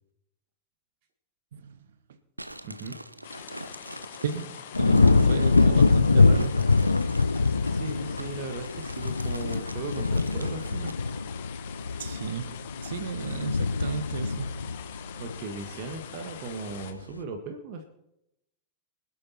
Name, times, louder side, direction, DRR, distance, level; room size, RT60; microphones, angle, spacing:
sound 1, 2.4-11.2, right 1 dB, 85° right, 0.7 m, -44 dB
voice 1, 2.6-2.9 5.0-5.4 7.7-10.9 15.2-17.8, right 4 dB, 45° right, 1.7 m, -38 dB
sound 2, 3.2-16.9, left 10 dB, 55° left, 1.5 m, -44 dB
voice 2, 4.2-6.6 12.0-14.7, right 7 dB, 60° right, 1.3 m, -34 dB
sound 3, 4.7-16.0 16.5-16.9, left 3 dB, 80° left, 0.6 m, -24 dB
25.0 x 8.8 x 4.3 m
figure-of-eight pair, 90°, 0 cm